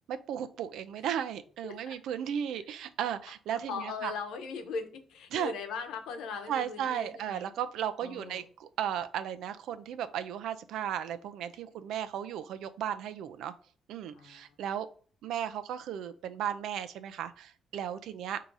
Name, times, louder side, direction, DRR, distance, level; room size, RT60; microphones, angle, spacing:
voice 1, 0.1-4.1 5.3-5.5 6.5-13.5 13.9-14.9 15.2-18.4, right 9 dB, 80° right, 11 dB, 0.5 m, -35 dB
voice 2, 1.6-1.9 3.7-7.5 8.0-8.5 14.1-14.4, left 5 dB, 85° left, 6 dB, 0.9 m, -39 dB
4.7 x 2.8 x 3.9 m, 0.41 s
cardioid pair, 145°, 0 cm